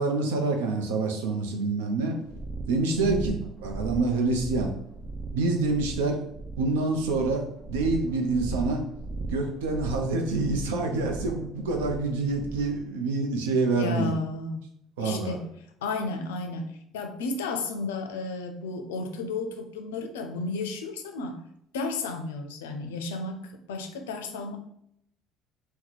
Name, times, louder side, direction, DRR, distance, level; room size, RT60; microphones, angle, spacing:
voice 1, 0.0-2.2 2.7-3.3 3.6-4.7 5.3-6.2 6.6-8.9 9.3-14.1 15.0-15.4, right 3 dB, 85° right, 3 dB, 0.5 m, -26 dB
sound 1, 2.3-12.8, right 3 dB, 50° right, 0.8 m, -37 dB
voice 2, 3.0-3.3 13.8-14.6 15.0-15.5 15.8-21.4 21.7-24.6, left 3 dB, 90° left, 6 dB, 0.4 m, -33 dB
2.9 x 2.1 x 4.0 m, 0.72 s
hypercardioid pair, 70°, 0 cm